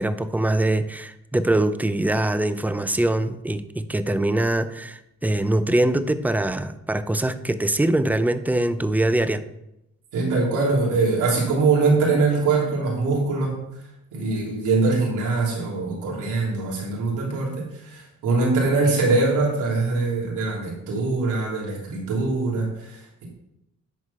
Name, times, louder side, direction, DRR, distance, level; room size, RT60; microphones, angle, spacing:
voice 1, 0.0-9.4, right 1 dB, 5° right, 12 dB, 0.6 m, -23 dB
voice 2, 10.1-13.6 14.1-23.2, right 3 dB, 80° right, -3 dB, 3.4 m, -23 dB
9.8 x 4.8 x 5.6 m, 0.86 s
cardioid pair, 90°, 30 cm